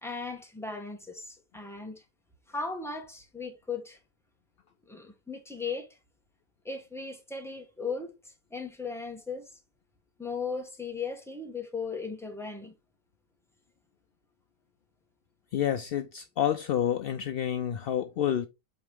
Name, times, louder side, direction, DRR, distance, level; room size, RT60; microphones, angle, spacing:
voice 1, 0.0-2.0 2.5-4.0 4.9-6.0 6.6-9.5 10.2-12.7, left 4 dB, ahead, 1.1 m, -37 dB
voice 2, 15.5-18.5, left 10 dB, 75° left, 0.5 m, -29 dB
8.1 x 3.4 x 3.5 m
omnidirectional pair, 1.5 m